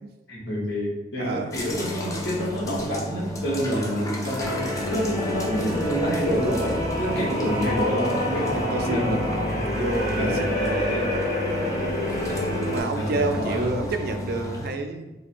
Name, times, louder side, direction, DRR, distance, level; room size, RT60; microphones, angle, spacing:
voice 1, 0.3-8.6 8.8-9.6 10.1-10.4 12.9-13.7, equal, 85° left, -5 dB, 1.2 m, -28 dB
voice 2, 1.2-1.5 3.7-4.0 7.2-7.3 8.5-9.2 9.7-11.2 12.0-12.3 12.6-15.1, right 3 dB, 60° right, 6 dB, 0.4 m, -29 dB
sound 1, 1.5-14.7, left 1 dB, 20° left, 0.5 m, -33 dB
sound 2, 4.4-12.8, left 1 dB, 60° left, 1.1 m, -27 dB
4.2 x 2.2 x 2.5 m, 1.0 s
head